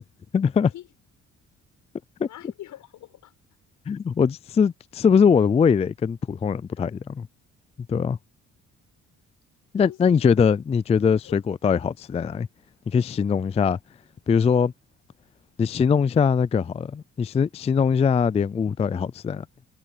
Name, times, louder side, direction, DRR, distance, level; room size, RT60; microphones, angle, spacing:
voice 1, 0.3-0.7 3.9-7.3 7.9-8.2 9.7-12.5 12.9-13.8 14.3-14.7 15.6-19.4, left 6 dB, 20° left, 0.3 m, -21 dB
voice 2, 2.2-3.3 6.7-6.8 9.8-10.4 11.2-11.4, left 13 dB, 80° left, 7.3 m, -43 dB
cardioid pair, 90°, 30 cm